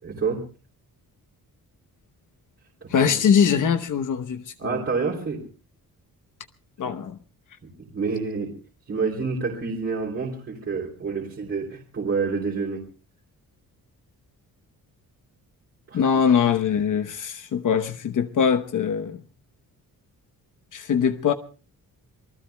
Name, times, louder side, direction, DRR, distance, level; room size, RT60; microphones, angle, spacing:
voice 1, 0.0-0.4 2.8-3.1 4.6-5.4 7.8-8.6 8.9-12.9 15.9-16.2, right 4 dB, 40° right, 3.1 m, -28 dB
voice 2, 2.9-4.8 6.8-7.2 15.9-19.2 20.7-21.3, left 7 dB, 60° left, 1.0 m, -22 dB
27.5 x 20.0 x 2.2 m
wide cardioid pair, 150°, 35 cm